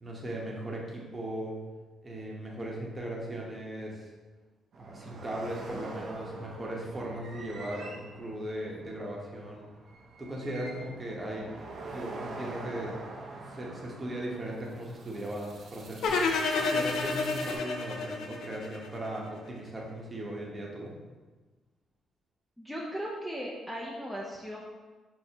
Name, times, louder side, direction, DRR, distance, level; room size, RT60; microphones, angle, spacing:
voice 1, 0.0-1.6 2.0-4.1 4.8-9.7 10.2-11.5 11.9-13.0 13.5-16.3 16.6-21.0, right 1 dB, 25° right, -2 dB, 0.8 m, -38 dB
sound 1, 4.7-17.6, right 2 dB, 60° right, 0.6 m, -45 dB
sound 2, 16.0-19.2, left 4 dB, 75° left, 0.4 m, -29 dB
voice 2, 22.6-24.6, equal, ahead, -4 dB, 0.5 m, -37 dB
6.0 x 2.1 x 2.7 m, 1.3 s
cardioid pair, 90°, 0 cm